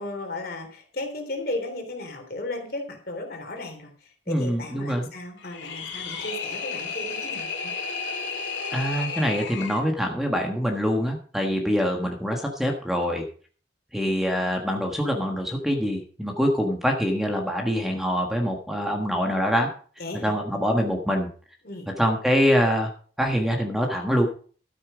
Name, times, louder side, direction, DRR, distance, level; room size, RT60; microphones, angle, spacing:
voice 1, 0.0-3.9 4.3-7.7 20.0-20.3 21.6-21.9, left 2 dB, 55° left, 4 dB, 3.2 m, -35 dB
voice 2, 4.3-5.1 8.7-13.2 13.9-19.7 20.2-21.3 22.0-22.9 23.2-24.3, equal, ahead, 2 dB, 1.4 m, -24 dB
sound 1, 5.4-9.8, left 5 dB, 85° left, 2.5 m, -32 dB
12.5 x 8.8 x 5.1 m, 0.43 s
head